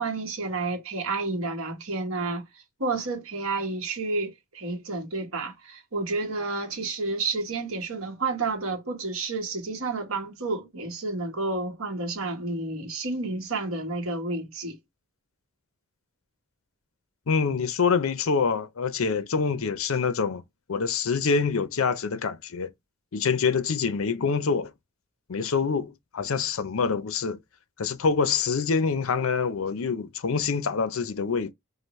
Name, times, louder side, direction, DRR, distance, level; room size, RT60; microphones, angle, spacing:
voice 1, 0.0-14.8, right 3 dB, 75° right, 1.3 m, -30 dB
voice 2, 17.3-20.4 20.7-22.7 23.1-24.7 25.3-27.4 27.8-31.5, left 5 dB, 70° left, 0.6 m, -26 dB
4.9 x 2.5 x 3.1 m
head